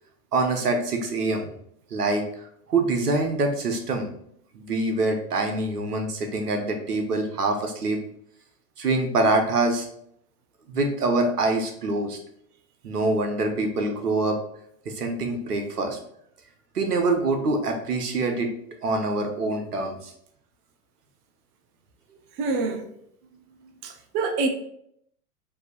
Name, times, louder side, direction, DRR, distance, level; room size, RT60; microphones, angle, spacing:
voice 1, 0.3-1.5 1.9-2.2 2.7-4.1 4.5-8.0 8.8-9.9 10.7-12.2 12.8-14.4 14.8-16.0 16.7-18.5 18.8-20.1, right 2 dB, 80° right, 1.1 m, -25 dB
voice 2, 22.4-22.8 23.8-24.5, right 3 dB, 25° right, 0.4 m, -26 dB
4.5 x 2.8 x 4.0 m
figure-of-eight pair, 100°, 46 cm